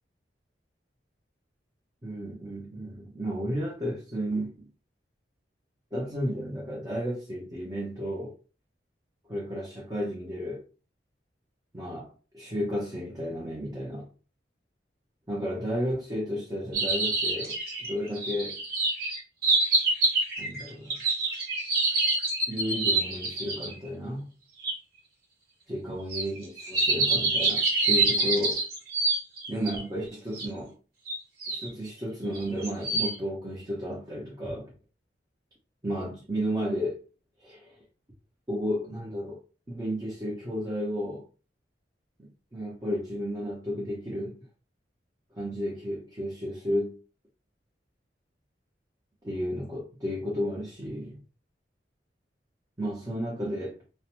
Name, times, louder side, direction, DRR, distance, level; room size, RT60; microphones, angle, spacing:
voice 1, 2.0-4.7 5.9-8.3 9.3-10.6 11.7-14.1 15.3-18.6 20.4-21.0 22.5-24.3 25.7-28.6 29.5-30.8 31.5-34.7 35.8-37.0 37.4-37.7 38.5-39.4 39.7-41.3 42.2-44.5 45.3-47.0 49.2-51.2 52.8-53.8, equal, 20° right, 0.7 m, -33 dB
sound 1, 16.7-23.7 24.6-24.7 26.1-29.8 30.3-30.5 31.1-31.7 32.3-33.2, right 3 dB, 55° right, 0.9 m, -26 dB
2.5 x 2.1 x 2.9 m
head